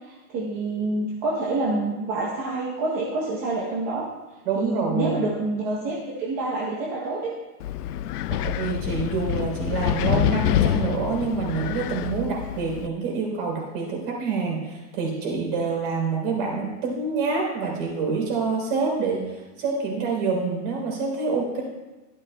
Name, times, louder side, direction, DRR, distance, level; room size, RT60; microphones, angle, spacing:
voice 1, 0.0-4.0 4.5-7.3, right 2 dB, 15° right, -4 dB, 0.8 m, -27 dB
voice 2, 4.5-5.2 8.3-21.6, right 4 dB, 35° right, 0 dB, 3.6 m, -27 dB
Wind, 7.6-12.9, left 12 dB, 80° left, 0.6 m, -26 dB
15.0 x 13.5 x 2.2 m, 1.1 s
supercardioid pair, 175°, 46 cm